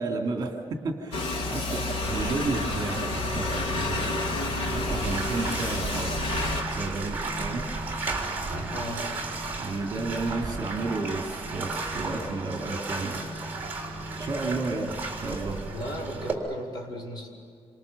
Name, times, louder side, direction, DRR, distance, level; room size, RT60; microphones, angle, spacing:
voice 1, 0.0-4.2 4.7-6.2 6.7-7.7 9.6-13.3 14.2-15.6, right 3 dB, 40° right, 3 dB, 3.0 m, -32 dB
sound 1, 1.1-6.6, left 3 dB, 65° left, 2.8 m, -30 dB
Bathtub (filling or washing), 2.0-16.3, right 3 dB, 15° right, 3.8 m, -34 dB
voice 2, 8.7-9.1 15.7-17.3, equal, 40° left, -1 dB, 5.1 m, -36 dB
28.0 x 26.5 x 7.0 m, 2.3 s
wide cardioid pair, 165°, 10 cm